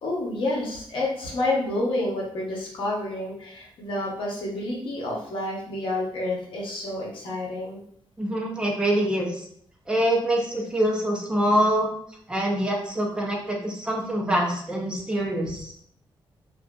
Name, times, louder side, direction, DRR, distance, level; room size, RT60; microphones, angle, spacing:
voice 1, 0.0-7.8, left 2 dB, 70° left, -3 dB, 0.8 m, -29 dB
voice 2, 8.2-9.4 9.9-11.9 12.3-15.7, right 1 dB, 10° right, -1 dB, 0.5 m, -25 dB
2.6 x 2.4 x 2.2 m, 0.66 s
wide cardioid pair, 170°, 9 cm